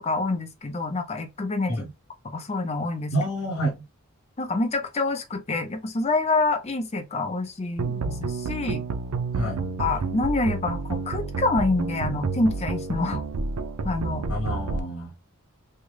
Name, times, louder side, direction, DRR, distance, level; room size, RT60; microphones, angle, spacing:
voice 1, 0.0-1.7 2.3-3.1 4.4-8.8 9.8-13.2 13.8-14.3, left 3 dB, 30° left, 0.5 m, -27 dB
voice 2, 3.1-3.8 9.4-9.6 14.3-15.1, right 1 dB, 65° left, 0.9 m, -28 dB
sound 1, 7.8-14.8, right 4 dB, 85° right, 0.5 m, -30 dB
3.6 x 2.2 x 3.2 m
head